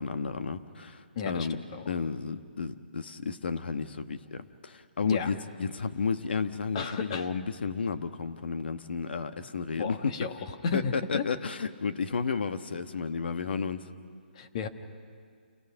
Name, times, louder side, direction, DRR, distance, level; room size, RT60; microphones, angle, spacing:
voice 1, 0.0-1.6 1.9-10.1 10.7-13.9, left 5 dB, 65° left, 9 dB, 1.3 m, -32 dB
voice 2, 1.1-1.8 5.0-5.3 6.7-7.3 9.8-11.3 14.3-14.7, left 6 dB, 35° left, 7 dB, 1.3 m, -33 dB
29.0 x 18.0 x 5.9 m, 2.1 s
hypercardioid pair, 160°, 6 cm